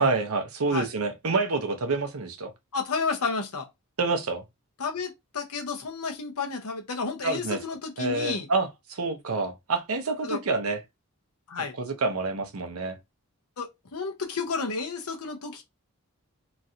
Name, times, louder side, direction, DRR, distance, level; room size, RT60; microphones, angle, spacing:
voice 1, 0.0-2.5 4.0-4.4 7.2-7.6 8.0-10.8 11.6-13.0, right 3 dB, 75° right, 0.7 m, -27 dB
voice 2, 2.7-3.7 4.8-8.5 10.2-10.4 11.5-11.8 13.6-15.6, left 4 dB, 85° left, 0.8 m, -31 dB
3.0 x 2.5 x 2.7 m
head